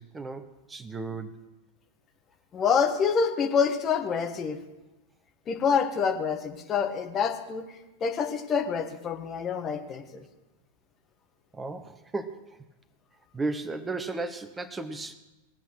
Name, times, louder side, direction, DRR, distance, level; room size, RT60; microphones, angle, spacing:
voice 1, 0.0-1.4 11.5-12.4 13.3-15.1, right 3 dB, 15° right, 12 dB, 1.0 m, -34 dB
voice 2, 2.5-4.6 5.5-7.6 8.0-10.2, left 6 dB, 25° left, 4 dB, 1.6 m, -27 dB
20.5 x 8.1 x 6.3 m, 1.0 s
figure-of-eight pair, 90°, 0 cm